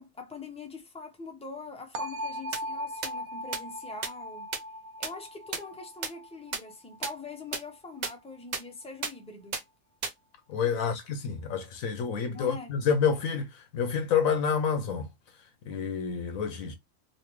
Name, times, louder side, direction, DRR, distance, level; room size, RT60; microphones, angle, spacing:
voice 1, 0.0-4.5 5.0-9.6 10.7-10.9 12.3-12.7, left 3 dB, 10° left, 0.4 m, -43 dB
sound 1, 1.9-7.8, equal, 80° right, 1.1 m, -39 dB
sound 2, 2.5-2.6 3.0-3.1 3.5-3.6 4.0-4.1 4.5-4.6 5.0-5.1 5.5-5.6 6.0-6.1 6.5-6.6 7.0-7.1 7.5-7.6 8.0-8.1 8.5-8.6 9.0-9.1 9.5-9.6 10.0-10.1, right 5 dB, 60° right, 0.4 m, -31 dB
voice 2, 10.5-16.8, left 6 dB, 75° left, 1.0 m, -29 dB
3.1 x 2.8 x 3.0 m
omnidirectional pair, 1.5 m